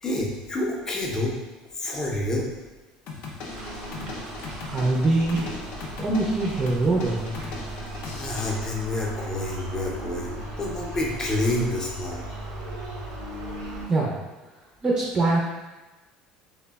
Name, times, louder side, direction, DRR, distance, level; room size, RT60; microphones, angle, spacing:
voice 1, 0.0-1.4 1.8-2.5 8.1-12.2, left 1 dB, 25° left, -2 dB, 0.5 m, -28 dB
sound 1, 3.1-8.5, left 3 dB, 70° left, 0.5 m, -38 dB
sound 2, 3.5-13.9, right 1 dB, 75° right, 0.8 m, -37 dB
voice 2, 4.7-5.4 6.0-7.4 13.9-14.1 14.8-15.4, right 2 dB, 25° right, -3 dB, 0.5 m, -23 dB
3.3 x 2.1 x 2.2 m, 1.1 s
supercardioid pair, 110°, 3 cm